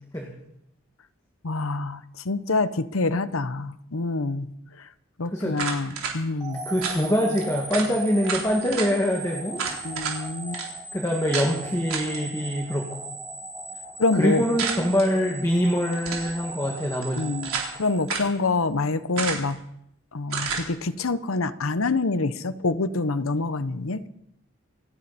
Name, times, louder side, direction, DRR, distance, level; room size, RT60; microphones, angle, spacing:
voice 1, 1.4-4.5 5.2-6.6 9.8-10.6 14.0-14.4 17.2-19.6 20.1-24.0, left 3 dB, 80° left, 14 dB, 0.8 m, -26 dB
sound 1, 5.5-6.1 6.8-7.0 7.4-7.5 7.7-7.9 8.2-8.9 9.6-10.2 10.5-10.7 11.3-11.5 11.9-12.2 14.6-15.1 15.9-16.3 17.0-17.7 18.1-18.3 19.2-19.6 20.3-20.7, right 6 dB, 85° right, 3.8 m, -30 dB
sound 2, 6.4-18.6, right 3 dB, 15° right, 1.5 m, -38 dB
voice 2, 6.7-9.6 10.6-12.9 14.1-17.3, equal, 15° left, 0 dB, 1.9 m, -24 dB
27.5 x 11.0 x 4.2 m, 0.75 s
head